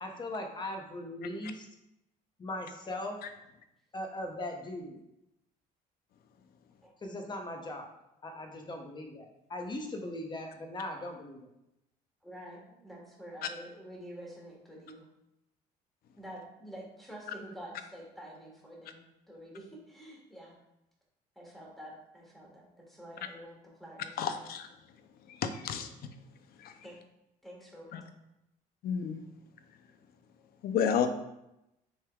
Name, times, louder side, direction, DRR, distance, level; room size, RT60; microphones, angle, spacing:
voice 1, 0.0-1.7 2.4-3.2 3.9-5.0 7.0-7.9 8.2-11.5, left 1 dB, 25° left, 3 dB, 0.7 m, -39 dB
voice 2, 12.2-15.1 16.2-20.6 21.3-24.5 26.8-27.0 27.4-28.0, equal, ahead, -2 dB, 1.4 m, -48 dB
voice 3, 24.2-24.7 25.3-25.9 26.6-26.7 27.9-28.0 28.8-29.2 30.6-31.1, left 7 dB, 65° left, 8 dB, 0.5 m, -31 dB
6.2 x 3.3 x 2.3 m, 0.87 s
cardioid pair, 110°, 17 cm